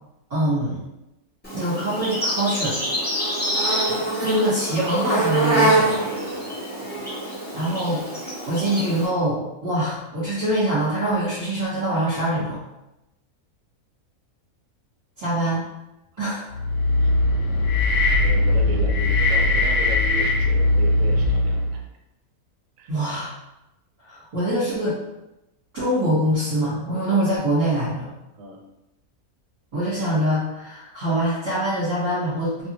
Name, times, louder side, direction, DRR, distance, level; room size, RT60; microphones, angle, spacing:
voice 1, 0.3-0.8 1.5-2.8 4.2-5.9 7.5-8.0 8.5-12.6 15.2-15.6 16.2-16.6 22.9-23.3 24.0-25.0 25.7-28.1 29.7-32.7, right 1 dB, 30° right, -12 dB, 1.1 m, -24 dB
Insect, 1.4-9.1, right 1 dB, 10° left, 0.5 m, -25 dB
voice 2, 5.9-6.6 7.0-7.1 18.2-21.8 22.8-22.9 28.4-28.6, right 3 dB, 70° right, 1 dB, 0.9 m, -35 dB
sound 1, 16.5-21.8, left 2 dB, 65° left, 0.8 m, -20 dB
2.5 x 2.4 x 2.9 m, 0.94 s
omnidirectional pair, 1.6 m